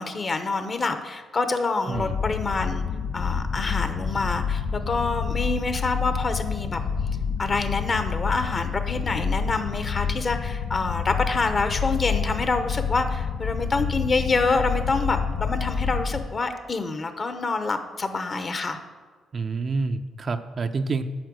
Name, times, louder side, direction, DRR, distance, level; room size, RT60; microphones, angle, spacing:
voice 1, 0.0-2.8 3.1-6.8 7.4-18.8, left 3 dB, 35° left, 8 dB, 0.9 m, -26 dB
sound 1, 1.9-16.3, left 6 dB, 65° left, 0.6 m, -28 dB
voice 2, 19.3-21.0, right 4 dB, 40° right, 8 dB, 0.6 m, -28 dB
8.8 x 5.8 x 6.3 m, 1.5 s
cardioid pair, 90°, 0 cm